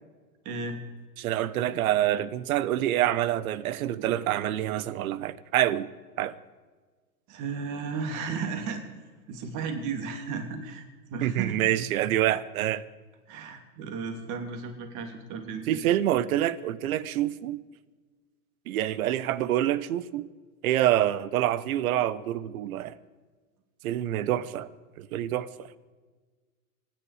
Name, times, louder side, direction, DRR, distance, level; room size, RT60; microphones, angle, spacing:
voice 1, 0.4-0.8 7.3-8.8 9.3-11.6 13.3-15.8, right 5 dB, 40° right, 3.1 m, -34 dB
voice 2, 1.2-5.9 6.2-6.4 11.2-12.8 15.7-17.6 18.7-20.2 20.6-23.0 23.8-24.7 25.0-25.7, right 12 dB, 65° right, 1.0 m, -26 dB
25.5 x 10.5 x 5.0 m
hypercardioid pair, 120°, 46 cm